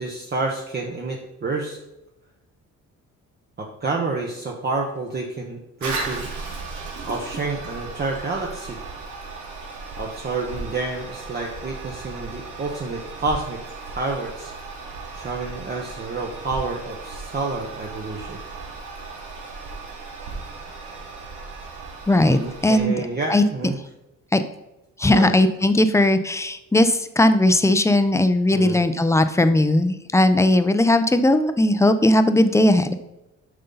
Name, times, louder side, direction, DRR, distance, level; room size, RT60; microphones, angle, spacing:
voice 1, 0.0-1.8 3.6-6.3 7.0-8.8 10.0-13.6 13.9-14.5 15.1-18.4 22.3-23.8 25.1-25.3 28.5-28.8, right 3 dB, 35° right, -1 dB, 1.1 m, -29 dB
Toilet flush, 5.8-22.8, right 3 dB, 80° right, 2.2 m, -36 dB
voice 2, 22.1-23.0 23.3-23.4 24.3-24.4 25.0-32.9, left 1 dB, 10° left, 10 dB, 0.6 m, -18 dB
7.8 x 5.5 x 3.9 m, 0.91 s
cardioid pair, 90°, 30 cm